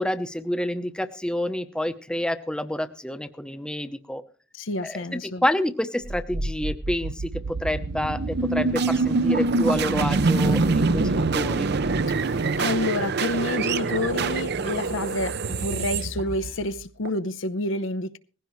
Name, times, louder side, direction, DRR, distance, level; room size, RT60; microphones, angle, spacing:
voice 1, 0.0-4.2 4.8-11.7, left 1 dB, 5° left, 0.8 m, -28 dB
voice 2, 4.5-5.4 12.2-12.3 12.6-18.2, left 2 dB, 80° left, 0.8 m, -29 dB
sound 1, 6.0-17.1, right 3 dB, 55° right, 0.7 m, -25 dB
19.5 x 15.5 x 3.1 m
head